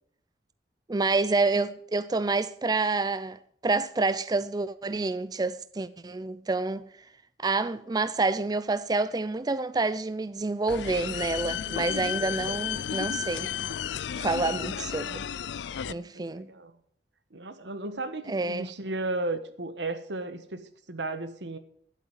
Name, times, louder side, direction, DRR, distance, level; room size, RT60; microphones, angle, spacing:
voice 1, 0.9-6.9 7.4-13.5 14.2-15.2 15.9-16.5 18.3-18.7, right 3 dB, 20° right, 0.4 m, -28 dB
sound 1, 10.7-15.9, left 9 dB, 85° left, 0.4 m, -33 dB
voice 2, 15.8-16.7 17.3-21.6, right 2 dB, 90° right, 1.3 m, -35 dB
11.0 x 8.2 x 7.2 m
head